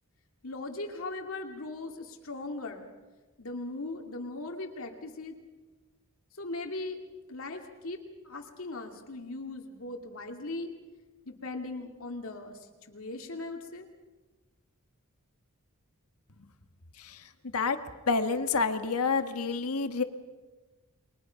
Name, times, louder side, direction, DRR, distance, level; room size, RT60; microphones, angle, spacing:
voice 1, 0.4-2.9 3.4-5.4 6.4-7.0 7.3-8.0 8.2-10.7 11.3-12.6 12.9-13.9, left 2 dB, 65° left, 3 dB, 2.4 m, -39 dB
voice 2, 18.1-20.0, left 4 dB, 80° left, 8 dB, 1.6 m, -28 dB
29.5 x 23.0 x 5.8 m, 1.2 s
head